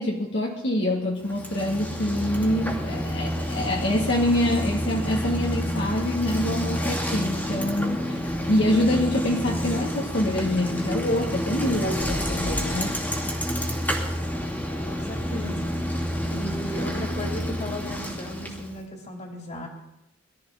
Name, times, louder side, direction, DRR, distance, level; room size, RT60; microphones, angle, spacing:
voice 1, 0.0-13.0, left 1 dB, 60° left, -2 dB, 2.0 m, -25 dB
Bicycle, 1.2-18.8, equal, 10° left, 2.4 m, -29 dB
voice 2, 14.8-15.7 16.3-19.7, left 1 dB, 35° left, 1 dB, 3.0 m, -36 dB
22.0 x 12.5 x 3.8 m, 0.87 s
head